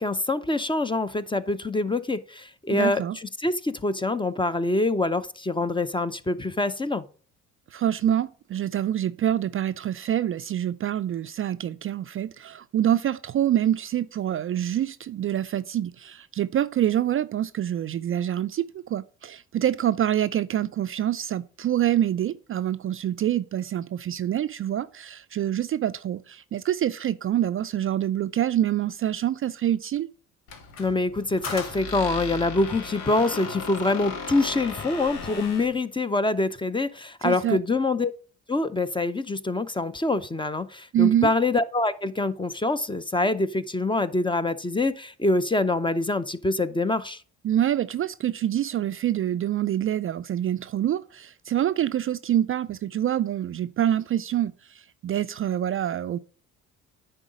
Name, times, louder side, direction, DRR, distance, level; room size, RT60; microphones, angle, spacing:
voice 1, 0.0-7.0 30.8-38.1 38.5-47.2, left 2 dB, 15° left, 0.6 m, -25 dB
voice 2, 2.7-3.2 7.7-30.1 37.2-37.6 40.9-41.3 47.4-56.2, right 11 dB, 35° right, 0.4 m, -26 dB
Squeak, 30.5-35.8, left 5 dB, 80° left, 1.3 m, -36 dB
9.9 x 3.9 x 5.1 m
hypercardioid pair, 55°, 36 cm